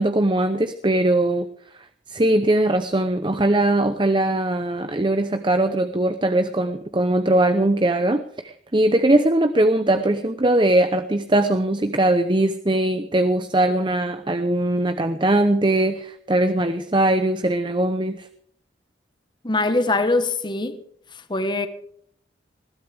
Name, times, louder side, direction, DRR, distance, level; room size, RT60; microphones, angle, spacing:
voice 1, 0.0-1.5 2.1-18.3, right 1 dB, 25° right, 0.8 m, -20 dB
voice 2, 19.4-20.8 21.1-21.7, left 2 dB, 25° left, 1.4 m, -22 dB
21.0 x 16.0 x 3.5 m
head